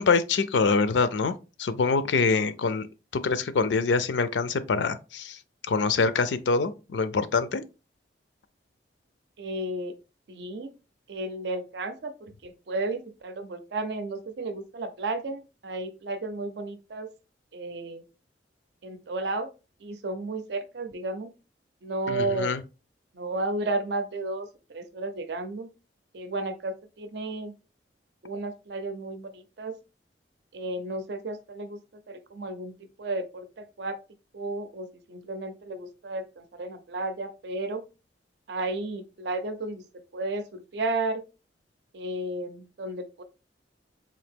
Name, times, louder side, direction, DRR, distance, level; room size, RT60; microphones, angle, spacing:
voice 1, 0.0-2.9 3.1-5.4 5.7-7.6 22.1-22.6, left 4 dB, 85° left, 0.4 m, -25 dB
voice 2, 9.4-9.9 10.3-10.7 11.1-17.1 17.5-18.0 18.8-19.5 19.8-21.3 21.8-22.5 23.1-25.7 26.1-27.5 28.2-29.7 30.5-31.8 32.1-32.7 33.0-34.0 34.3-37.8 38.5-39.8 40.1-41.2 41.9-43.2, right 2 dB, 70° right, 0.5 m, -33 dB
3.8 x 2.8 x 3.4 m
head